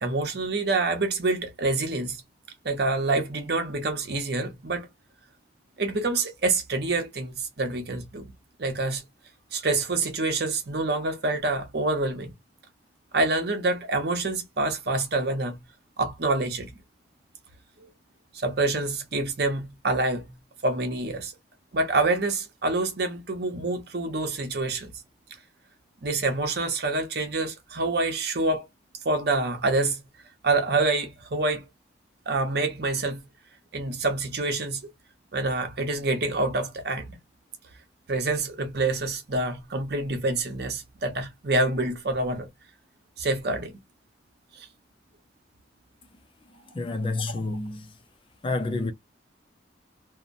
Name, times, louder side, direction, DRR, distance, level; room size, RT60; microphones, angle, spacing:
voice 1, 0.0-2.2 2.6-4.9 5.8-8.3 8.6-9.0 9.5-12.3 13.1-15.6 16.0-16.7 18.3-20.3 20.6-21.3 21.7-24.9 26.0-28.7 29.0-30.0 30.4-31.6 32.3-33.2 33.7-34.8 35.3-37.2 38.1-42.5 43.2-43.7 44.6-44.7, right 2 dB, 60° right, 0.8 m, -26 dB
voice 2, 46.7-47.9 48.4-48.9, left 2 dB, 30° left, 0.4 m, -29 dB
2.8 x 2.1 x 2.5 m
head